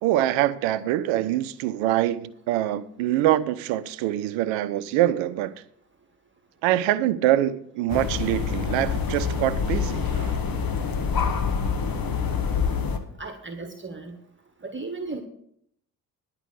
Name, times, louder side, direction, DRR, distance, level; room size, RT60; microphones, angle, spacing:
voice 1, 0.0-5.5 6.6-10.4, right 13 dB, 70° right, 0.7 m, -24 dB
sound 1, 7.9-13.0, left 6 dB, 45° left, 1.6 m, -26 dB
voice 2, 13.2-14.2 14.6-15.2, right 3 dB, 25° right, 1.5 m, -35 dB
11.0 x 5.8 x 8.4 m
hypercardioid pair, 45°, 47 cm